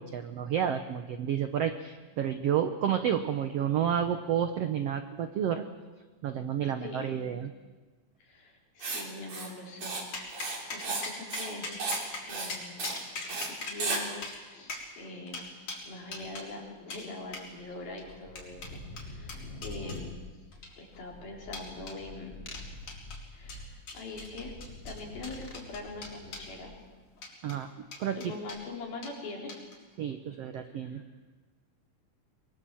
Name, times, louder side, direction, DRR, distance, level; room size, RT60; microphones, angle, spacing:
voice 1, 0.0-5.6 6.2-7.5 27.4-27.7 28.0-28.3 30.0-31.0, right 9 dB, 75° right, 8 dB, 1.4 m, -30 dB
voice 2, 6.8-7.2 8.2-10.0 10.3-11.7 12.2-13.0 13.2-15.5 15.8-20.2 20.8-22.5 23.3-24.5 24.9-26.7 28.2-29.5 30.6-31.0, left 3 dB, 80° left, -1 dB, 6.1 m, -43 dB
Writing, 8.8-9.0 9.3-9.5 9.8-10.0 10.3-11.1 11.3-11.5 11.8-12.0 12.3-12.5 12.8-13.0 13.3-13.5 13.8-14.0, right 3 dB, 50° right, 4.6 m, -33 dB
sound 1, 10.1-16.5 16.9-17.1 17.3-17.5 18.0-20.0 20.5-21.0 21.5-22.0 22.5-23.2 23.5-26.5 27.2-27.6 27.9-28.6 29.0-29.2 29.5-29.8, left 3 dB, 55° left, 5.2 m, -41 dB
sound 2, 12.9-13.4 13.7-14.2 16.6-16.7 16.9-27.0, left 2 dB, 20° left, 3.2 m, -46 dB
24.5 x 22.0 x 7.7 m, 1.3 s
omnidirectional pair, 4.1 m